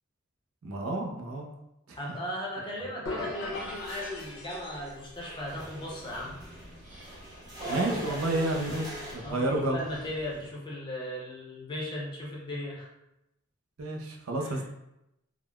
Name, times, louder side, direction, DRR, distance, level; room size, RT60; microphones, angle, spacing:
voice 1, 0.6-1.5 1.9-2.0 7.7-9.8 13.8-14.7, right 2 dB, 75° right, 1 dB, 0.5 m, -30 dB
voice 2, 1.9-6.3 7.7-8.2 9.2-12.9 14.4-14.6, left 1 dB, 20° left, -4 dB, 0.6 m, -37 dB
sound 1, 3.0-5.1, left 2 dB, 65° left, 0.7 m, -38 dB
sound 2, 3.5-9.1, equal, 20° right, 0.7 m, -44 dB
Dog, 5.5-10.5, right 1 dB, 40° right, 1.2 m, -43 dB
3.7 x 2.0 x 2.2 m, 0.88 s
head